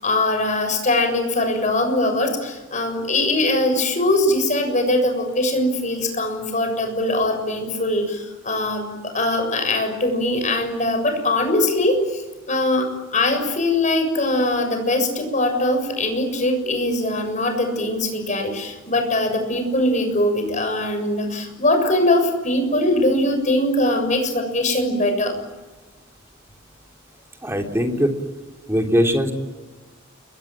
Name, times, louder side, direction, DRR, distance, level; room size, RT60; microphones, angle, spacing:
voice 1, 0.0-12.2 12.5-25.4, left 1 dB, 40° left, 6 dB, 7.1 m, -21 dB
voice 2, 27.4-28.1 28.7-29.3, equal, 15° right, 3 dB, 3.4 m, -20 dB
29.5 x 24.0 x 7.7 m, 1.2 s
head